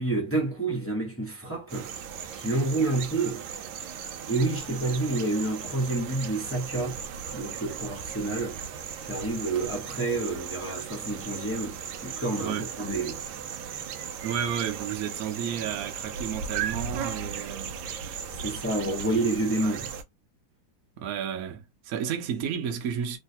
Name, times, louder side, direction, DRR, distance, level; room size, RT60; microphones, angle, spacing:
voice 1, 0.0-1.9 2.3-3.4 4.3-7.0 7.3-8.6 9.1-13.2 18.4-19.9, right 2 dB, 15° left, 0.5 m, -29 dB
sound 1, 1.7-20.0, right 7 dB, 75° right, 1.3 m, -37 dB
voice 2, 14.2-17.8 18.2-18.4 19.6-19.9 21.0-23.2, right 8 dB, 60° right, 1.0 m, -32 dB
3.2 x 2.8 x 2.7 m
omnidirectional pair, 2.3 m